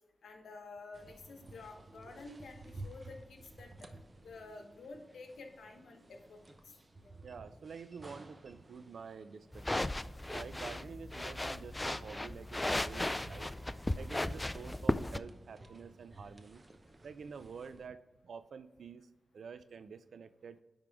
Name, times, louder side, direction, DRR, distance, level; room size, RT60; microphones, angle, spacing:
voice 1, 0.2-3.9 4.2-6.4 7.0-7.1, left 3 dB, 85° left, 4 dB, 1.0 m, -50 dB
sound 1, 0.9-17.9, right 2 dB, 35° right, 0.8 m, -55 dB
voice 2, 7.2-9.9 10.3-13.5 14.0-16.6 17.0-19.1 19.3-20.6, right 6 dB, 80° right, 13 dB, 0.4 m, -48 dB
sound 2, 9.5-15.2, left 1 dB, 20° left, 0.3 m, -36 dB
9.6 x 3.6 x 3.5 m, 1.0 s
cardioid pair, 65°, 0 cm